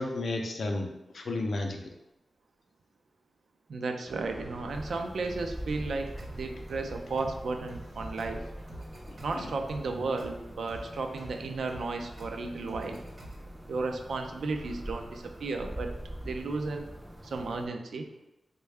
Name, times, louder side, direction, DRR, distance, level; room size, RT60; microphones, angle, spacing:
voice 1, 0.0-1.9 9.3-9.5, left 2 dB, 70° left, 3 dB, 0.5 m, -33 dB
voice 2, 3.7-8.5 9.2-13.0 13.7-15.9 16.2-16.9 17.2-18.1, right 3 dB, 85° right, 5 dB, 0.4 m, -34 dB
sound 1, 4.1-17.7, equal, 15° right, 0.4 m, -44 dB
sound 2, 5.7-13.7, right 1 dB, 65° right, 1.0 m, -48 dB
3.5 x 2.2 x 3.2 m, 0.93 s
wide cardioid pair, 90°, 0 cm